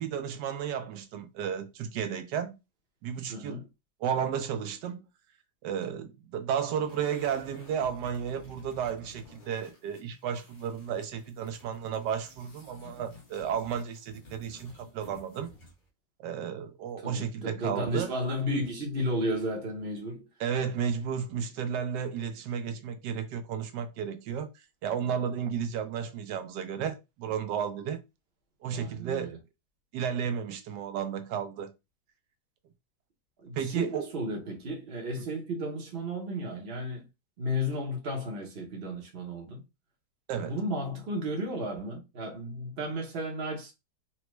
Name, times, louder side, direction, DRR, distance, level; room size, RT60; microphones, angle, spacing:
voice 1, 0.0-2.6 3.0-3.6 4.0-5.0 5.6-15.5 16.2-18.1 20.4-24.5 24.8-28.0 28.6-29.4 29.9-31.7 33.6-34.1 40.3-40.6, right 8 dB, 85° right, 1.3 m, -33 dB
voice 2, 3.3-3.7 17.0-20.3 28.7-29.4 33.4-37.1 37.4-39.6 40.4-43.7, equal, 45° right, 0.8 m, -33 dB
sound 1, 6.8-15.9, left 3 dB, 35° left, 1.0 m, -53 dB
4.1 x 2.2 x 3.0 m
omnidirectional pair, 1.8 m